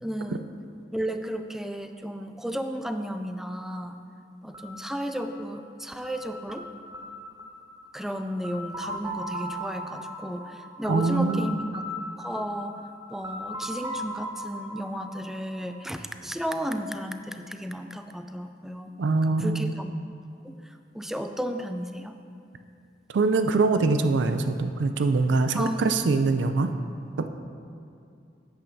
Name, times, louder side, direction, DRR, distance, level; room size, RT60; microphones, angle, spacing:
voice 1, 0.0-0.5 0.9-4.0 4.4-6.7 7.9-11.8 12.2-12.8 13.1-18.9 19.2-20.0 20.4-22.2 25.5-25.9, equal, ahead, 7 dB, 0.3 m, -33 dB
sound 1, 4.5-16.3, equal, 20° right, 0.8 m, -39 dB
voice 2, 10.9-11.5 19.0-19.7 23.1-26.7 27.2-27.3, right 3 dB, 70° right, 8 dB, 0.4 m, -23 dB
10.5 x 9.0 x 2.7 m, 2.4 s
head